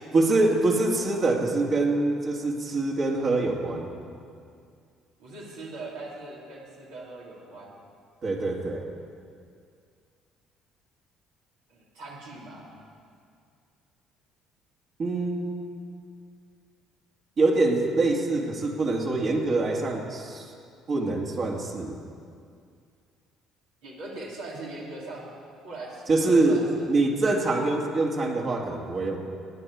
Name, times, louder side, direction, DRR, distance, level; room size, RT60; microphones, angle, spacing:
voice 1, 0.1-3.9 8.2-8.9 15.0-15.6 17.4-20.5 20.9-22.0 26.1-26.6 26.9-29.2, right 2 dB, 45° right, -1 dB, 2.4 m, -24 dB
voice 2, 5.2-7.8 11.7-12.7 23.8-25.3 25.6-26.9, right 2 dB, 75° right, -6 dB, 3.1 m, -40 dB
19.0 x 9.2 x 4.9 m, 2.3 s
hypercardioid pair, 55°, 0 cm